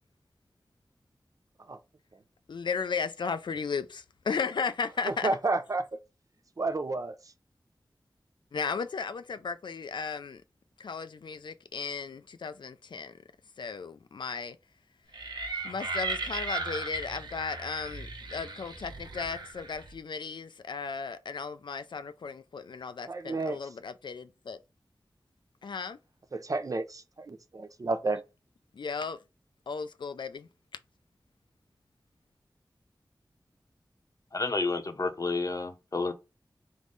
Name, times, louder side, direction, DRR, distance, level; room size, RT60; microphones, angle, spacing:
voice 1, 2.5-5.4 8.5-10.4 10.8-13.1 13.6-14.6 15.6-24.6 25.6-26.0 28.7-29.2 29.7-30.5, left 5 dB, 75° left, 0.4 m, -35 dB
voice 2, 5.0-6.0 6.6-7.2 23.1-23.6 26.3-28.2, right 3 dB, 45° right, 0.5 m, -31 dB
sound 1, 15.1-20.0, right 3 dB, 70° right, 1.0 m, -36 dB
voice 3, 34.3-36.1, left 3 dB, 45° left, 0.7 m, -30 dB
3.6 x 3.1 x 3.8 m
wide cardioid pair, 75°, 8 cm